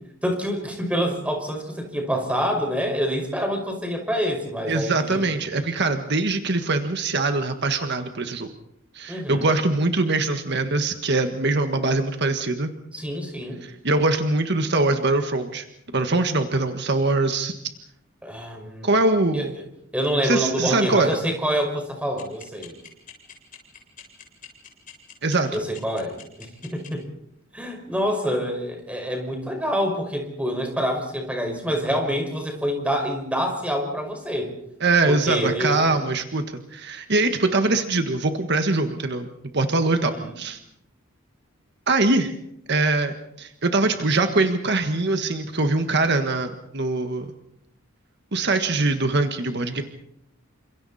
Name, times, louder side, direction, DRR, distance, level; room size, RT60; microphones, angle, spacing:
voice 1, 0.2-5.2 9.1-9.5 12.9-13.6 18.2-18.9 19.3-19.5 19.9-22.8 25.5-27.0 27.5-34.5 35.1-36.0 39.9-40.3, equal, 5° right, 2 dB, 5.6 m, -26 dB
voice 2, 4.7-8.5 8.9-12.7 13.6-15.6 15.9-17.5 18.8-19.5 20.2-21.2 25.2-25.6 34.8-39.3 39.5-40.6 41.9-42.4 42.7-47.3 48.3-49.8, right 2 dB, 55° right, 6 dB, 1.6 m, -23 dB
sound 1, 22.2-26.9, left 8 dB, 45° left, 7.6 m, -43 dB
29.5 x 27.0 x 4.3 m, 0.78 s
head